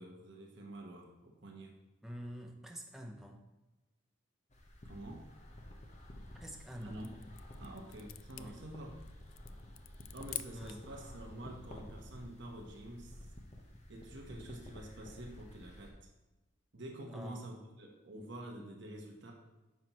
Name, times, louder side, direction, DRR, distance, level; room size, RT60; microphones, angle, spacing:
voice 1, 0.0-1.7 4.8-5.2 6.8-7.1 7.6-8.9 10.1-13.3 13.9-16.1 16.7-19.3, right 1 dB, 60° right, 1 dB, 1.1 m, -48 dB
voice 2, 2.0-3.4 6.4-7.1 8.4-8.6 10.5-10.8 17.1-17.6, equal, ahead, 1 dB, 0.7 m, -47 dB
sound 1, 4.5-15.9, left 1 dB, 35° left, 1.0 m, -52 dB
sound 2, 6.3-10.9, left 14 dB, 75° left, 0.4 m, -49 dB
9.4 x 5.8 x 3.0 m, 1.1 s
head